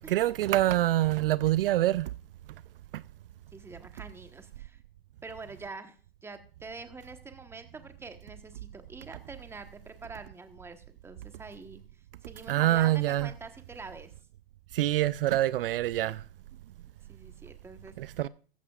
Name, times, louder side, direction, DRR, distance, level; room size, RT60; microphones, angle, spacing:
voice 1, 0.1-2.1 2.9-3.0 12.5-13.3 14.7-16.2 18.0-18.3, right 14 dB, 65° right, 0.5 m, -25 dB
voice 2, 3.5-4.8 5.2-6.0 6.2-14.1 17.1-18.1, right 3 dB, 10° right, 1.2 m, -46 dB
15.0 x 14.5 x 2.4 m
hypercardioid pair, 125°, 31 cm